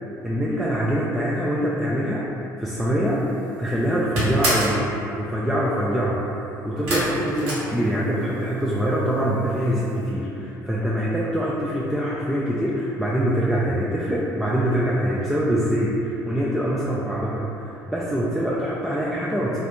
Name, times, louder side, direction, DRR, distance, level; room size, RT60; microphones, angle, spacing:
voice 1, 0.2-3.2 3.6-4.8 5.2-6.3 6.6-19.6, equal, 5° right, -6 dB, 0.3 m, -24 dB
sound 1, 3.1-3.5 3.8-4.8 6.9-8.4 8.6-9.3 9.6-9.7 10.0-10.1, right 1 dB, 60° right, 0.9 m, -26 dB
2.4 x 2.3 x 2.9 m, 2.8 s
figure-of-eight pair, 55°, 10 cm